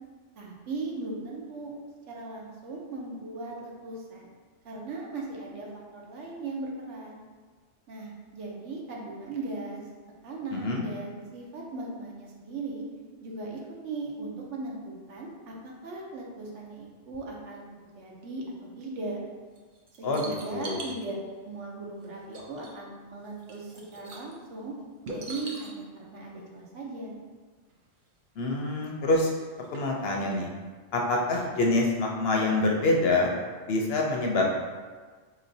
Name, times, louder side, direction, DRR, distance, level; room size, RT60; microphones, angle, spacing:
voice 1, 0.4-1.7 2.1-4.3 4.6-7.2 7.9-9.8 10.2-12.9 13.2-19.2 20.0-21.2 21.4-24.8 25.1-27.1, right 3 dB, 75° right, -2 dB, 1.1 m, -38 dB
voice 2, 10.5-10.8 20.0-20.8 28.4-29.3 29.7-30.5 30.9-33.3 33.7-34.6, left 2 dB, 65° left, 0 dB, 0.7 m, -26 dB
sound 1, 19.5-21.0 22.0-22.1 22.3-22.9 23.2-24.3 25.0-25.7 27.7-27.8 28.1-28.2 28.8-28.9 29.4-30.4 31.3-31.5 31.8-31.9, right 2 dB, 55° right, 0.6 m, -42 dB
4.3 x 3.0 x 2.6 m, 1.4 s
omnidirectional pair, 1.2 m